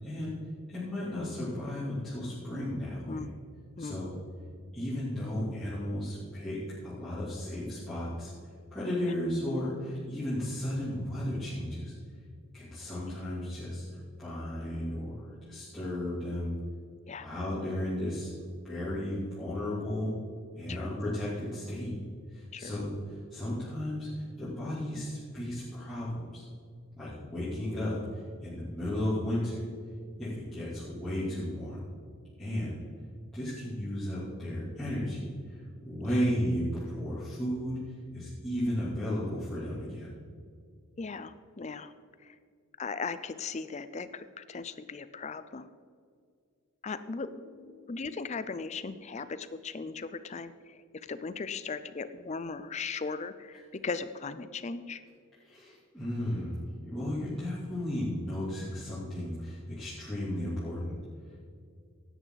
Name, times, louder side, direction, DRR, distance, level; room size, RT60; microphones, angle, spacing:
voice 1, 0.0-0.3 0.7-3.2 3.8-4.1 4.7-8.3 8.7-11.9 12.5-13.8 14.2-16.5 17.1-18.3 18.6-20.1 20.5-21.9 22.3-26.4 27.0-28.0 28.4-29.6 30.2-31.8 32.4-32.8 33.3-35.2 35.8-37.8 38.1-40.1 47.8-47.9 55.4-61.0, left 1 dB, ahead, -14 dB, 3.0 m, -34 dB
voice 2, 41.0-41.9 42.2-42.4 42.8-45.7 46.8-47.3 47.9-50.8 51.1-55.0, left 4 dB, 30° left, 13 dB, 0.4 m, -38 dB
17.0 x 9.2 x 4.0 m, 2.2 s
head